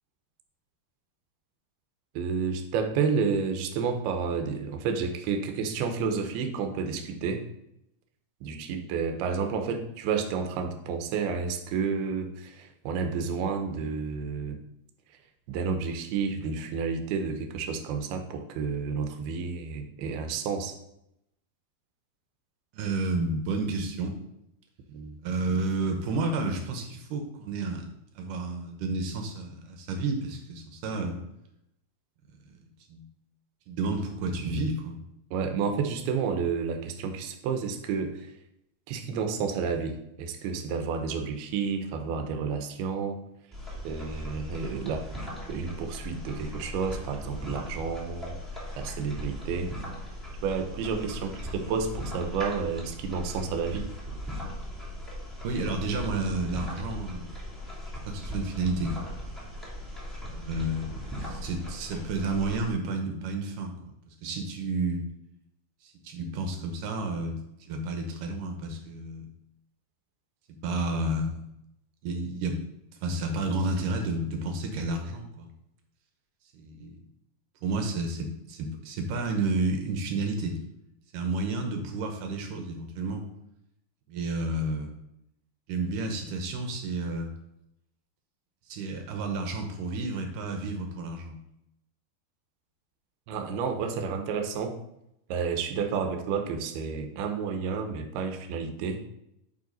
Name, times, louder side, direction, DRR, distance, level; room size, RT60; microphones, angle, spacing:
voice 1, 2.1-7.5 8.4-14.6 15.5-20.8 24.9-25.2 35.3-38.4 38.9-43.2 43.8-45.1 45.5-48.4 48.8-49.8 50.4-54.0 93.3-94.8 95.3-99.0, right 5 dB, 90° right, 6 dB, 2.8 m, -30 dB
voice 2, 22.7-24.2 25.2-27.9 28.2-31.2 32.9-33.0 33.7-35.0 55.4-57.3 58.1-59.0 60.3-65.0 65.8-67.4 67.7-69.3 70.5-71.4 72.0-72.6 73.0-75.5 76.5-77.0 77.6-80.6 81.1-83.2 84.1-84.9 85.7-87.3 88.7-91.4, right 2 dB, 70° right, 4 dB, 2.3 m, -31 dB
sound 1, 43.5-62.7, equal, ahead, 1.9 m, -38 dB
10.5 x 4.7 x 3.9 m, 0.83 s
omnidirectional pair, 4.4 m